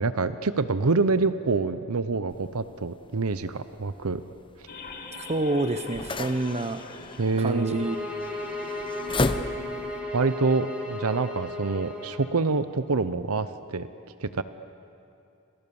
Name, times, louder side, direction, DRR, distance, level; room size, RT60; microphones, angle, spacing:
voice 1, 0.0-4.2 7.2-7.8 10.1-13.9 14.2-14.4, right 4 dB, 85° right, 12 dB, 0.8 m, -26 dB
sound 1, 2.3-10.0, left 2 dB, 25° left, 0.9 m, -35 dB
sound 2, 4.7-10.2, left 2 dB, 45° left, 2.9 m, -44 dB
voice 2, 5.2-6.8 7.4-8.0, right 2 dB, 30° right, 7 dB, 0.9 m, -27 dB
sound 3, 7.4-12.3, left 2 dB, 5° right, 4.7 m, -35 dB
30.0 x 26.5 x 7.1 m, 2.7 s
head